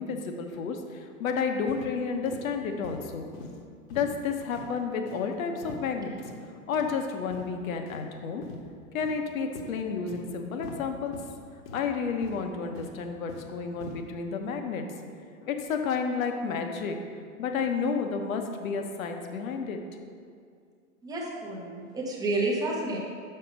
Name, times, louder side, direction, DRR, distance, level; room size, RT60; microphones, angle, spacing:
voice 1, 0.0-3.3 3.9-6.3 6.7-8.4 8.9-11.1 11.7-14.8 15.4-17.0 17.4-19.8, left 5 dB, 65° left, 5 dB, 1.1 m, -31 dB
sound 1, 1.7-1.9 2.2-2.4 2.8-3.0 3.3-3.5 3.9-4.1 4.5-4.7 5.1-5.2 5.6-5.9 6.2-6.3 6.7-6.9 7.3-7.4 7.9-8.0 8.4-8.6 9.0-9.2 9.5-9.7 10.1-10.2 10.6-10.8 11.1-11.3 11.6-11.8 12.2-12.4 12.7-13.5 13.8-14.0, left 3 dB, 45° left, 1.1 m, -43 dB
voice 2, 21.0-23.1, right 2 dB, 10° right, -3 dB, 0.8 m, -30 dB
6.7 x 5.4 x 5.2 m, 2.3 s
hypercardioid pair, 150°, 43 cm